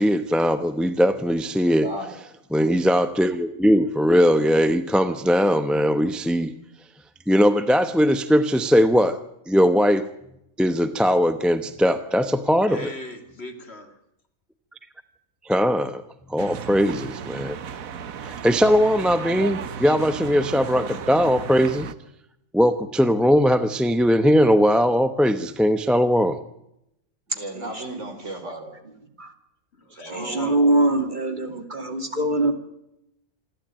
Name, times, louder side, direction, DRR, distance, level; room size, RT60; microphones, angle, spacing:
voice 1, 0.0-1.9 2.5-6.5 7.3-10.1 10.6-12.9 15.4-16.0 16.3-17.6 18.2-21.9 22.5-26.4, equal, ahead, 10 dB, 0.8 m, -20 dB
voice 2, 1.8-2.1 27.4-29.1 29.9-30.4, right 1 dB, 60° right, 6 dB, 4.3 m, -35 dB
voice 3, 12.7-13.9 29.7-31.1, left 1 dB, 50° left, 7 dB, 2.6 m, -38 dB
sound 1, 16.4-21.9, right 7 dB, 85° right, 1.4 m, -35 dB
voice 4, 30.1-32.5, right 2 dB, 35° right, 6 dB, 2.7 m, -22 dB
27.0 x 12.5 x 8.9 m, 0.82 s
omnidirectional pair, 1.4 m